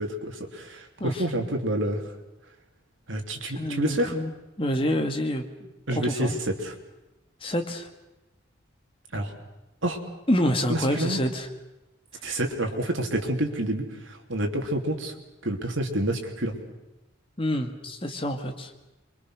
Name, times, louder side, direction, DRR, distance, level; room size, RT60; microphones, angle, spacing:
voice 1, 0.0-2.0 3.1-4.2 5.9-6.7 9.1-9.3 9.8-10.0 10.7-11.2 12.2-15.1 15.4-16.6, right 1 dB, 80° right, 3 dB, 3.3 m, -28 dB
voice 2, 3.6-4.3 4.6-5.4 6.0-6.4 7.4-7.9 10.3-11.5 17.4-18.7, equal, 25° left, 4 dB, 2.1 m, -27 dB
27.0 x 23.5 x 6.5 m, 0.99 s
head